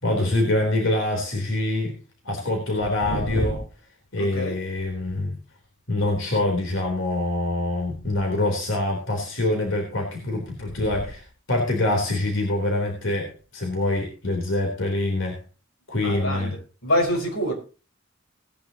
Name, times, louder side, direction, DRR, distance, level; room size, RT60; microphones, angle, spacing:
voice 1, 0.0-2.0 2.2-3.6 4.1-5.4 5.9-15.4 15.9-16.5, left 2 dB, 65° left, 3.7 m, -25 dB
voice 2, 3.0-3.6 4.2-4.6 16.0-16.6 16.8-17.5, equal, 85° left, 4.9 m, -26 dB
18.5 x 10.5 x 2.9 m
head